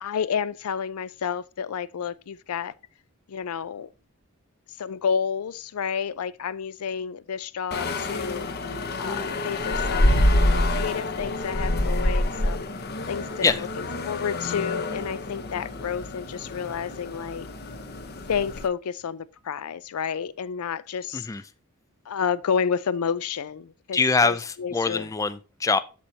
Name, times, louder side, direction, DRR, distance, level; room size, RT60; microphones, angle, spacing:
voice 1, 0.0-2.7 3.3-3.9 4.8-12.7 13.1-17.5 18.3-21.3 22.1-25.1, left 7 dB, 90° left, 0.4 m, -30 dB
sound 1, 7.7-18.7, left 1 dB, 45° left, 0.8 m, -27 dB
voice 2, 23.9-25.8, left 4 dB, 15° left, 0.3 m, -24 dB
13.0 x 4.4 x 2.8 m
head